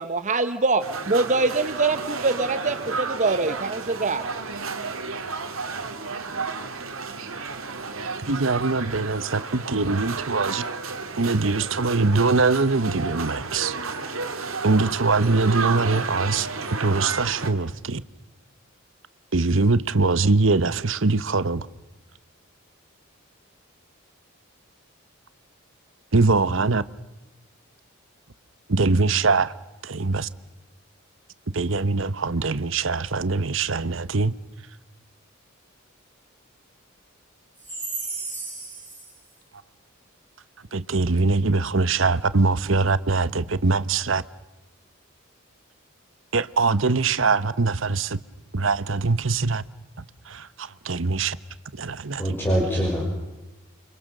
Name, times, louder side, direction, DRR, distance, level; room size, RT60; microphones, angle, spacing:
voice 1, 0.0-4.2, right 3 dB, 35° right, 1.0 m, -24 dB
sound 1, 0.8-17.5, right 4 dB, 85° right, 2.8 m, -32 dB
voice 2, 8.3-10.6 11.2-13.8 14.6-16.5 16.8-18.0 19.3-21.7 26.1-26.8 28.7-29.5 29.8-30.3 31.5-34.3 40.7-44.2 46.3-48.2 48.5-49.6 50.3-51.4 51.7-52.4, right 3 dB, 65° right, 1.0 m, -22 dB
voice 3, 37.7-39.1 52.2-53.1, right 1 dB, 10° left, 5.9 m, -27 dB
29.5 x 26.0 x 6.7 m
head